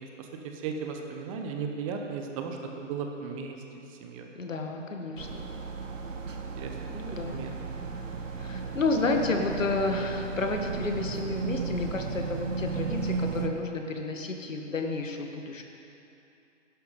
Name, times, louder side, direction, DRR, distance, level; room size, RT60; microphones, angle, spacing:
voice 1, 0.2-3.6 4.0-4.3 6.6-6.7 7.1-7.5, right 5 dB, 25° right, 3 dB, 1.1 m, -36 dB
voice 2, 4.3-5.5 6.9-7.5 8.3-15.6, left 3 dB, 85° left, 3 dB, 1.8 m, -31 dB
sound 1, 5.2-13.5, right 4 dB, 85° right, 1.2 m, -35 dB
11.5 x 11.5 x 5.5 m, 2.7 s
hypercardioid pair, 140°, 38 cm